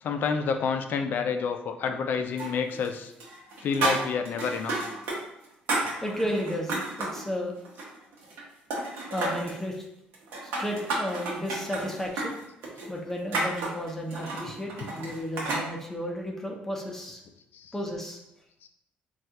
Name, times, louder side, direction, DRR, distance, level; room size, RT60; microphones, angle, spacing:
voice 1, 0.0-3.1 3.6-4.7 17.5-17.8 18.6-18.7, left 5 dB, 60° left, 6 dB, 0.4 m, -29 dB
sound 1, 2.4-2.9 3.2-5.2 5.4-7.2 7.6-8.4 8.7-9.6 10.1-15.7, right 2 dB, 80° right, 0.8 m, -31 dB
voice 2, 6.0-7.5 9.1-9.9 10.4-12.4 12.9-17.2 17.7-18.2, equal, 10° left, 0 dB, 0.6 m, -33 dB
3.3 x 2.3 x 2.8 m, 0.83 s
cardioid pair, 90°, 4 cm